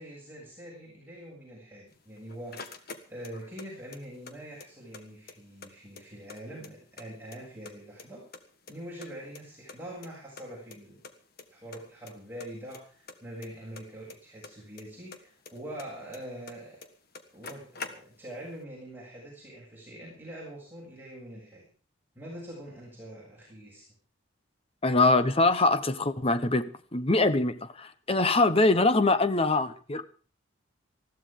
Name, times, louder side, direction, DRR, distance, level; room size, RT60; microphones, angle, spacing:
voice 1, 0.0-8.2 8.7-11.0 11.5-16.8 17.3-21.7 22.1-23.9, right 1 dB, 10° right, 7.2 m, -44 dB
sound 1, 1.9-3.7 3.9-5.0 5.3-5.4 5.6-7.0 7.3-8.1 8.3-9.8 10.0-10.1 10.4-10.5 10.7-10.8 11.0-11.4 11.7-12.1 12.4-14.8 15.1-16.5 16.8-16.9 17.1-18.4, left 4 dB, 50° left, 1.6 m, -44 dB
voice 2, 24.8-30.0, left 2 dB, 30° left, 0.9 m, -23 dB
20.0 x 14.5 x 3.7 m
head